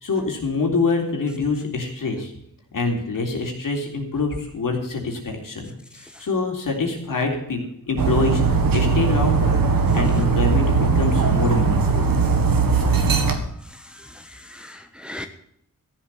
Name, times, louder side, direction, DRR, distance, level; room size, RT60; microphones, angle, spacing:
voice 1, 0.0-2.3 2.7-7.6 7.9-9.6 9.9-12.1, left 3 dB, 70° left, 1 dB, 3.6 m, -25 dB
Dog, 8.0-13.3, right 5 dB, 80° right, 1.9 m, -19 dB
voice 2, 13.7-15.3, left 1 dB, 5° right, 6 dB, 1.2 m, -39 dB
14.0 x 7.5 x 7.8 m, 0.71 s
wide cardioid pair, 80°, 34 cm